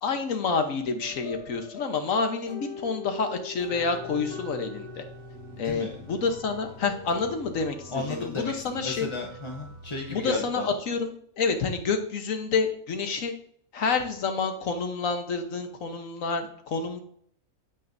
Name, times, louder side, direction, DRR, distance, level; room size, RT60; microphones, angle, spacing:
voice 1, 0.0-5.0 5.6-9.1 10.1-13.3 13.7-17.0, left 4 dB, 65° left, 6 dB, 1.4 m, -28 dB
sound 1, 1.0-7.4, left 4 dB, 45° left, 1.2 m, -43 dB
sound 2, 3.6-10.4, right 1 dB, 70° right, 1.8 m, -46 dB
voice 2, 5.5-6.0 7.9-10.7, left 3 dB, 25° left, 0 dB, 0.7 m, -34 dB
8.7 x 8.5 x 2.6 m, 0.65 s
omnidirectional pair, 1.5 m